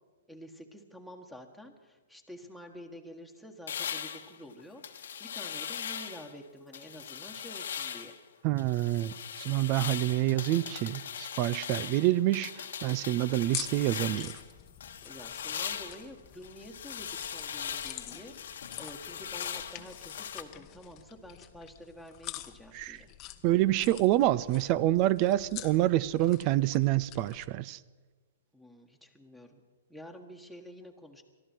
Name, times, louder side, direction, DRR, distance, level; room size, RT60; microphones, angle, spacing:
voice 1, 0.3-8.2 15.0-23.1 28.5-29.6 29.9-31.2, equal, 5° right, 5 dB, 1.6 m, -49 dB
sound 1, 3.7-6.3 6.7-8.2 8.6-14.5 14.8-20.4, left 8 dB, 70° left, 1.2 m, -40 dB
voice 2, 8.4-14.3 22.7-23.0 23.4-27.8, right 15 dB, 40° right, 20 dB, 0.5 m, -27 dB
sound 2, 13.4-27.5, left 16 dB, 35° left, 0.9 m, -46 dB
23.0 x 13.5 x 4.6 m, 1.4 s
hypercardioid pair, 125°, 0 cm